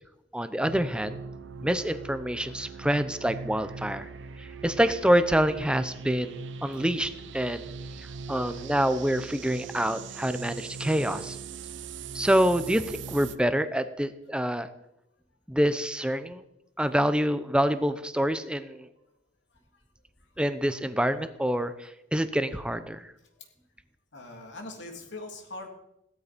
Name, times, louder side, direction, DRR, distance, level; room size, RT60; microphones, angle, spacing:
voice 1, 0.3-1.2 1.6-4.1 4.4-7.7 8.3-11.4 12.1-14.7 15.5-16.4 16.8-18.9 20.4-23.1, equal, 5° right, 11 dB, 0.8 m, -26 dB
sound 1, 0.6-13.4, right 5 dB, 75° right, 0.8 m, -40 dB
voice 2, 24.1-25.7, left 2 dB, 70° left, 2 dB, 3.1 m, -41 dB
17.0 x 12.5 x 5.3 m, 0.84 s
head